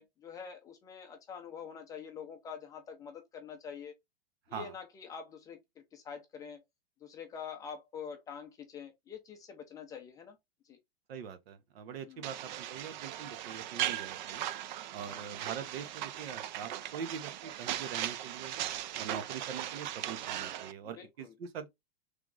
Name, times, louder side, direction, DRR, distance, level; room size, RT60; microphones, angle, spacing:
voice 1, 0.0-3.9 4.5-6.6 7.0-10.4 10.6-10.8 12.1-12.3 15.1-15.3 20.3-20.5 20.9-21.3, left 7 dB, 10° left, 0.4 m, -46 dB
voice 2, 11.1-14.4 14.9-18.5 19.0-21.7, right 7 dB, 80° right, 1.0 m, -43 dB
sound 1, 12.2-20.7, right 12 dB, 50° right, 0.4 m, -38 dB
3.4 x 3.0 x 3.7 m
supercardioid pair, 170°, 30 cm